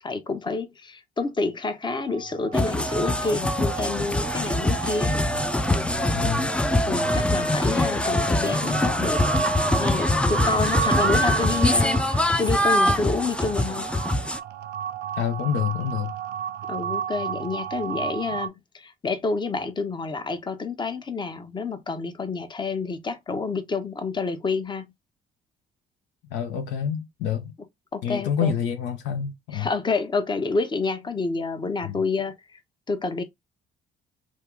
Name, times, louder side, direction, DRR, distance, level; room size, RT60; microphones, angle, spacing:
voice 1, 0.0-5.2 6.9-9.3 9.8-13.9 16.7-24.9 27.9-28.5 29.5-32.6 32.9-33.2, left 4 dB, 25° left, 0.7 m, -28 dB
sound 1, 1.8-18.5, right 9 dB, 60° right, 0.5 m, -33 dB
sound 2, 2.5-14.4, left 1 dB, 5° left, 0.4 m, -23 dB
voice 2, 6.1-6.5 15.2-16.1 26.3-27.5 28.0-29.7 31.8-32.0, left 8 dB, 65° left, 0.5 m, -27 dB
2.7 x 2.4 x 3.5 m
hypercardioid pair, 50°, 19 cm